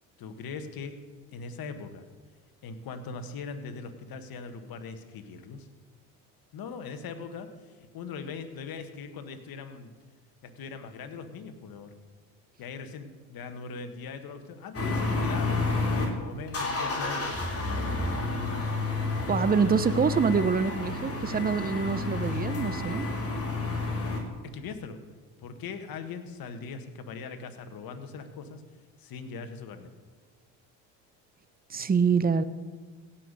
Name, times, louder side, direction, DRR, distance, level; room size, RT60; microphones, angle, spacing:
voice 1, 0.2-1.0 1.3-2.1 2.6-5.7 6.5-9.9 10.4-11.9 12.6-17.4 24.4-25.0 25.4-28.6 29.0-29.9, left 5 dB, 55° left, 8 dB, 1.6 m, -40 dB
sound 1, 14.7-16.1 16.5-24.2, left 3 dB, 30° left, 3.3 m, -30 dB
voice 2, 19.3-23.1 31.7-32.4, right 6 dB, 20° right, 13 dB, 0.8 m, -25 dB
17.0 x 5.9 x 6.6 m, 1.4 s
supercardioid pair, 80°, 43 cm